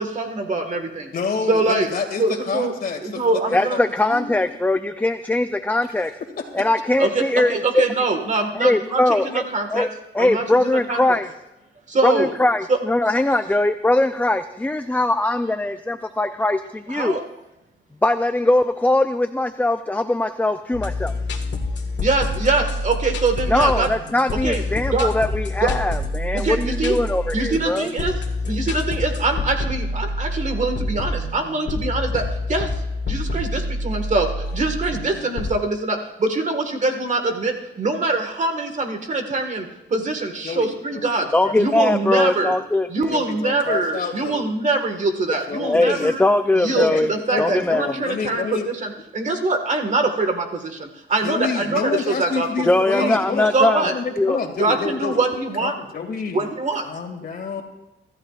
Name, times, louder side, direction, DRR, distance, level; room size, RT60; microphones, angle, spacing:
voice 1, 0.0-1.1 1.5-1.9 2.2-2.7 3.0-3.8 7.0-9.9 10.2-11.2 11.9-12.3 12.7-12.8 16.9-17.2 22.0-23.9 24.4-24.6 24.9-25.1 25.6-25.7 26.2-27.0 27.3-28.1 28.5-41.3 41.6-42.5 42.9-46.2 46.5-52.5 52.7-53.1 53.5-53.9 54.6-55.7 56.3-56.8, right 3 dB, 40° right, 5 dB, 1.7 m, -23 dB
voice 2, 1.1-4.4 6.4-6.7 40.4-42.5 43.1-44.5 45.5-46.2 46.8-47.0 47.3-48.7 51.2-55.2 55.6-56.5 56.8-57.6, left 5 dB, 50° left, 5 dB, 2.3 m, -29 dB
voice 3, 3.5-6.1 6.5-7.9 8.5-9.4 9.7-9.9 10.1-11.3 12.0-17.2 18.0-21.1 23.5-27.9 41.3-42.9 45.6-47.1 47.4-47.9 52.6-54.4, left 2 dB, 10° left, 8 dB, 0.4 m, -21 dB
sound 1, 20.7-35.5, left 2 dB, 65° left, 1.7 m, -27 dB
24.5 x 14.0 x 2.5 m, 0.96 s
cardioid pair, 110°, 20 cm